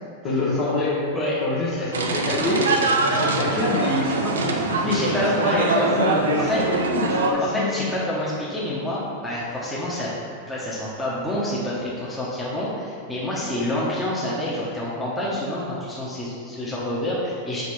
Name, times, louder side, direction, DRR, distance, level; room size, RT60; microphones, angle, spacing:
voice 1, 0.2-1.0 1.4-2.7 3.0-7.9, left 2 dB, 50° left, -7 dB, 1.3 m, -26 dB
sound 1, 1.9-7.3, right 3 dB, 80° right, 0.6 m, -23 dB
voice 2, 4.8-6.6 7.5-10.1 10.5-17.6, left 1 dB, 10° left, -8 dB, 1.2 m, -27 dB
4.9 x 4.0 x 4.8 m, 2.3 s
hypercardioid pair, 100°, 0 cm